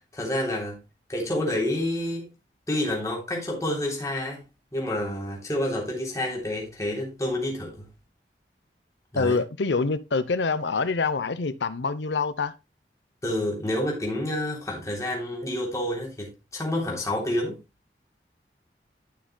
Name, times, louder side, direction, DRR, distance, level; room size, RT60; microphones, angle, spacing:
voice 1, 0.1-0.8 1.1-2.3 2.7-4.4 4.7-7.9 9.1-9.4 13.2-17.6, left 1 dB, 20° left, 3.4 m, -29 dB
voice 2, 9.2-12.5, left 4 dB, 90° left, 0.8 m, -26 dB
13.0 x 6.5 x 2.3 m
head